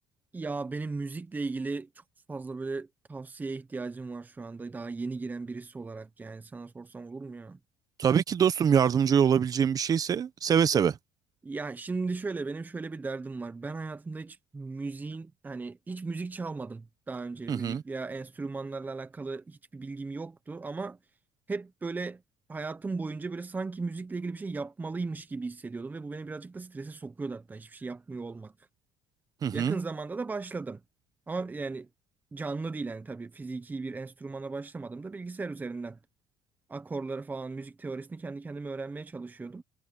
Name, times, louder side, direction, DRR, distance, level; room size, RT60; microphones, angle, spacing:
voice 1, 0.3-2.0 2.3-7.6 11.4-21.0 21.5-22.2 22.5-28.5 29.5-30.8 31.3-31.9 32.3-36.0 36.7-39.6, right 3 dB, 20° right, 1.1 m, -36 dB
voice 2, 8.0-10.9 17.5-17.8 29.4-29.8, right 8 dB, 40° right, 1.3 m, -24 dB
cardioid pair, 100°, 10 cm